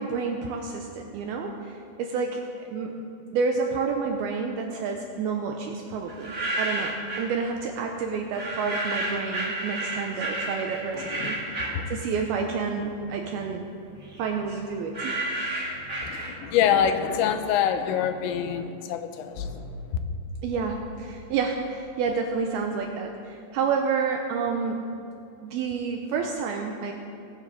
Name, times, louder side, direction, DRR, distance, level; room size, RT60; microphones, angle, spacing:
voice 1, 0.0-2.4 2.7-2.9 3.3-11.6 11.9-13.7 14.2-15.2 20.4-24.8 25.5-26.9, right 5 dB, 85° right, 3 dB, 2.2 m, -29 dB
sound 1, 6.1-7.3 8.3-12.5 12.9-16.6, right 2 dB, 35° right, 1.3 m, -32 dB
voice 2, 10.9-11.8 16.0-19.5, left 8 dB, 90° left, 8 dB, 3.1 m, -26 dB
sound 2, 19.4-23.2, left 4 dB, 65° left, 4.5 m, -43 dB
19.5 x 9.4 x 4.0 m, 2.6 s
omnidirectional pair, 5.1 m